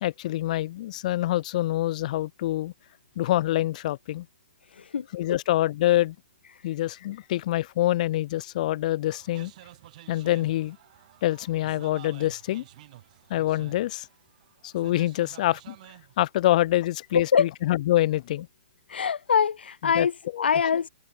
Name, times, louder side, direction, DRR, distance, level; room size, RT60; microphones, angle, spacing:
voice 1, 0.0-2.7 3.2-4.3 5.1-6.2 6.6-9.5 10.1-10.8 11.2-12.6 13.3-14.1 14.6-15.8 16.2-18.5 20.0-20.1 20.3-20.5, left 14 dB, 45° left, 2.1 m, -25 dB
voice 2, 4.7-5.4 6.5-6.6 17.1-17.5 18.9-20.9, left 7 dB, 75° left, 0.9 m, -24 dB
sound 1, 9.1-16.1, right 14 dB, 45° right, 5.5 m, -50 dB
hypercardioid pair, 135°, 6 cm